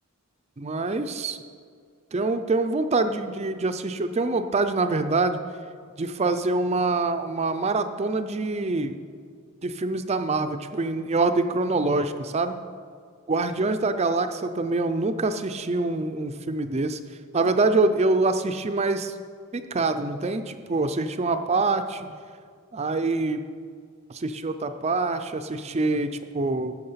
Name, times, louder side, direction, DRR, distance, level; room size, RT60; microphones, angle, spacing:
voice 1, 0.6-1.4 2.1-5.4 6.0-8.9 9.6-12.6 13.3-17.0 17.3-19.1 19.5-22.1 22.7-23.4 24.1-26.8, right 3 dB, 30° right, 9 dB, 0.5 m, -25 dB
12.5 x 7.1 x 5.7 m, 2.1 s
head